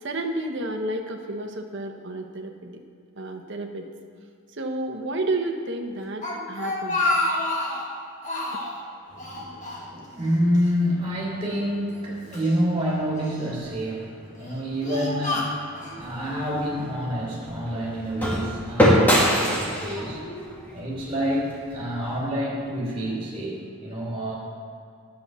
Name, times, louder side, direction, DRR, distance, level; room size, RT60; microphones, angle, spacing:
voice 1, 0.0-2.8 3.2-3.9 4.6-7.0, right 2 dB, 55° right, 4 dB, 1.1 m, -31 dB
Speech, 6.0-7.9 8.2-8.8 9.2-10.3 10.5-10.7 11.5-12.5 13.2-13.7 14.3-16.0, left 2 dB, 35° left, 1.6 m, -29 dB
voice 2, 9.1-20.3 20.7-24.4, equal, 25° right, -3 dB, 3.5 m, -28 dB
sound 1, 16.0-22.1, equal, 10° left, 1.8 m, -24 dB
10.5 x 7.9 x 6.8 m, 2.3 s
head